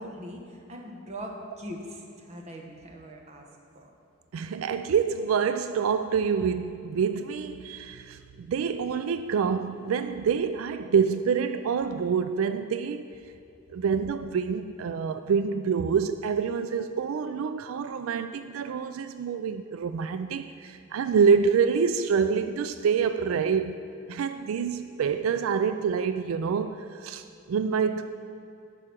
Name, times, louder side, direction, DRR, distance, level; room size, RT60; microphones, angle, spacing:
voice 1, 0.0-3.5 3.7-3.9, equal, 30° right, 1 dB, 1.1 m, -41 dB
voice 2, 4.3-13.1 13.7-23.8 24.1-28.0, right 6 dB, 85° right, 10 dB, 0.3 m, -26 dB
11.0 x 5.0 x 5.9 m, 2.7 s
head